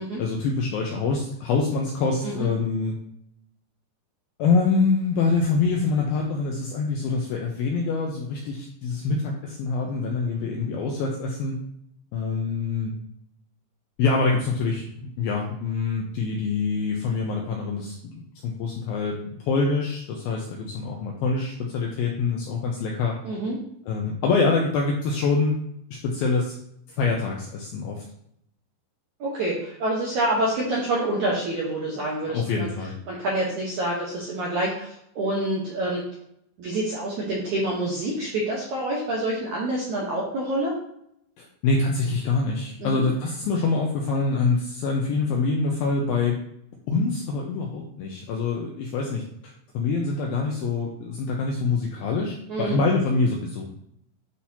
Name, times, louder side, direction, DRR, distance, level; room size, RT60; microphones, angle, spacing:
voice 1, 0.2-3.0 4.4-11.6 12.1-12.9 14.0-14.9 15.2-23.2 23.9-25.5 25.9-26.6 26.9-28.0 32.3-32.9 41.4-46.4 46.9-53.7, left 4 dB, 85° left, 0 dB, 2.1 m, -25 dB
voice 2, 23.2-23.6 29.2-32.7 33.1-36.0 36.6-40.8 42.8-43.0 52.5-52.8, right 1 dB, 75° right, -4 dB, 1.7 m, -27 dB
10.0 x 4.3 x 2.8 m, 0.72 s
omnidirectional pair, 5.1 m